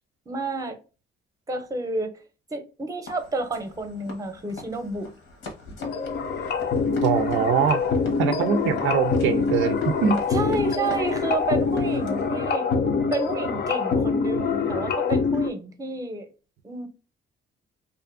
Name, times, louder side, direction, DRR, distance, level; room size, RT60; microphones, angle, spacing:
voice 1, 0.3-0.8 1.5-2.1 2.5-5.1 10.3-12.7 13.1-16.3 16.6-16.9, right 2 dB, 15° right, 0.7 m, -30 dB
sound 1, 3.1-12.3, left 2 dB, 80° left, 1.1 m, -42 dB
sound 2, 5.8-15.5, left 5 dB, 60° left, 0.5 m, -25 dB
voice 2, 7.0-7.8 8.2-10.2, right 7 dB, 85° right, 0.4 m, -23 dB
2.6 x 2.5 x 2.4 m
cardioid pair, 90°, 20 cm